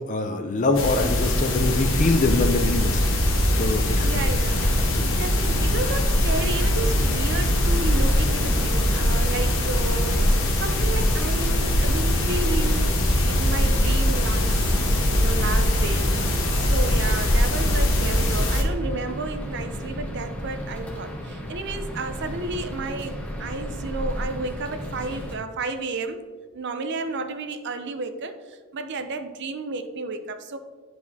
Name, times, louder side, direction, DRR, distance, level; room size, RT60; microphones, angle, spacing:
voice 1, 0.0-3.0 3.5-4.1 4.9-5.2, left 3 dB, 35° left, 8 dB, 0.4 m, -24 dB
sound 1, 0.7-18.6, left 1 dB, 60° left, 1.0 m, -22 dB
voice 2, 4.0-4.6 5.2-10.3 10.6-14.6 15.0-16.1 16.5-26.3 26.5-30.6, right 3 dB, 50° right, 8 dB, 0.5 m, -32 dB
sound 2, 5.5-25.4, equal, 5° left, 0.8 m, -34 dB
10.5 x 4.7 x 2.7 m, 1.5 s
head